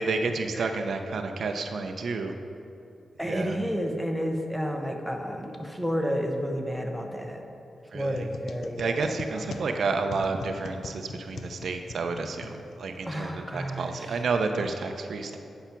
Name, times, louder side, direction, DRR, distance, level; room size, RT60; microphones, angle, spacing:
voice 1, 0.0-2.3 3.3-3.6 7.9-8.3 8.8-15.4, right 4 dB, 60° right, 6 dB, 0.5 m, -30 dB
voice 2, 3.2-7.4 7.9-9.9 13.1-14.2, equal, ahead, 3 dB, 0.7 m, -31 dB
sound 1, 8.0-13.1, left 4 dB, 65° left, 0.4 m, -42 dB
8.2 x 5.7 x 5.8 m, 2.7 s
wide cardioid pair, 145°, 0 cm